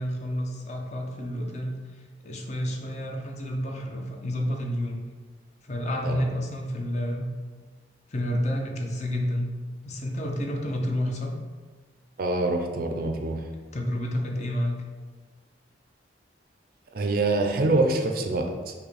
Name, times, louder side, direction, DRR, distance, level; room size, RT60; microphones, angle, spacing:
voice 1, 0.0-1.7 2.2-5.0 5.6-7.3 8.1-9.5 9.8-11.3 13.7-14.8, equal, 40° left, 1 dB, 0.6 m, -29 dB
voice 2, 12.2-13.5 16.9-18.7, right 2 dB, 55° right, 3 dB, 0.5 m, -25 dB
5.5 x 2.2 x 4.2 m, 1.5 s
head